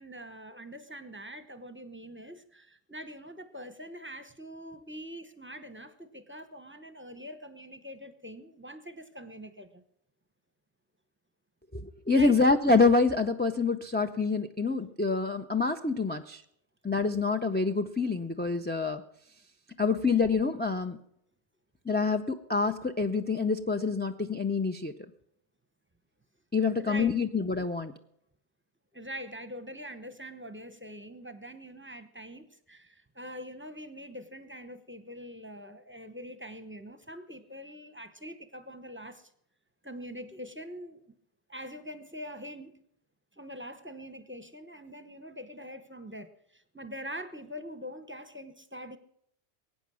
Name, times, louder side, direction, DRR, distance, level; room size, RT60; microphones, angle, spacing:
voice 1, 0.0-9.8 12.1-12.4 26.8-27.2 28.9-39.3 39.8-41.0 41.5-42.8 43.4-49.0, equal, 10° right, 9 dB, 0.8 m, -44 dB
voice 2, 11.7-16.4 16.8-19.0 19.8-21.0 21.9-24.9 26.5-27.9, left 4 dB, 15° left, 4 dB, 0.4 m, -26 dB
22.0 x 9.2 x 6.2 m, 0.75 s
omnidirectional pair, 1.2 m